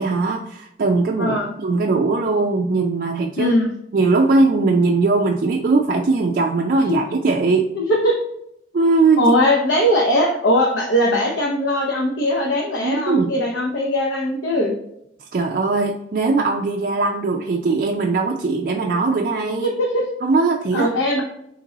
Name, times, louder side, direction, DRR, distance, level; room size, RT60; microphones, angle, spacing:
voice 1, 0.0-3.5 3.9-7.7 8.7-9.2 12.8-13.3 15.3-19.7 20.2-20.9, right 3 dB, 50° right, 0 dB, 0.3 m, -20 dB
voice 2, 1.2-1.5 3.4-3.7 6.8-7.0 7.7-8.1 9.2-14.7 19.6-20.1 20.7-21.2, equal, 80° left, -1 dB, 0.7 m, -20 dB
3.9 x 3.0 x 3.8 m, 0.76 s
head